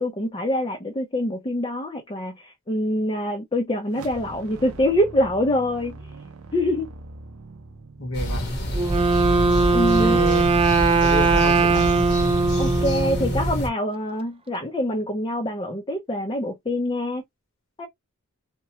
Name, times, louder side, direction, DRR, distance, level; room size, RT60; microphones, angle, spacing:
voice 1, 0.0-6.0 6.5-6.9 9.7-10.2 12.6-17.2 17.8-17.9, left 1 dB, 25° left, 0.6 m, -25 dB
sound 1, 3.9-9.3, right 2 dB, 85° right, 0.6 m, -43 dB
voice 2, 8.0-8.5 10.0-10.5 11.0-12.0, equal, 70° left, 1.2 m, -29 dB
sound 2, 8.1-13.7, equal, 50° left, 1.0 m, -26 dB
Wind instrument woodwind instrument, 8.7-13.6, right 4 dB, 25° right, 0.3 m, -20 dB
2.9 x 2.2 x 2.7 m
head